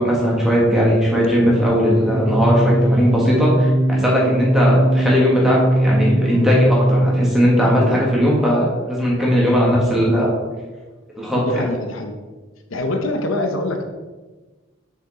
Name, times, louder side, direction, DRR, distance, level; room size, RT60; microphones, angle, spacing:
voice 1, 0.0-10.3 11.2-11.7, equal, ahead, -5 dB, 1.8 m, -18 dB
sound 1, 2.0-7.6, right 1 dB, 60° right, 1.8 m, -20 dB
voice 2, 11.3-12.2 12.7-13.8, left 2 dB, 85° left, 5 dB, 0.8 m, -24 dB
6.6 x 5.1 x 4.2 m, 1.3 s
head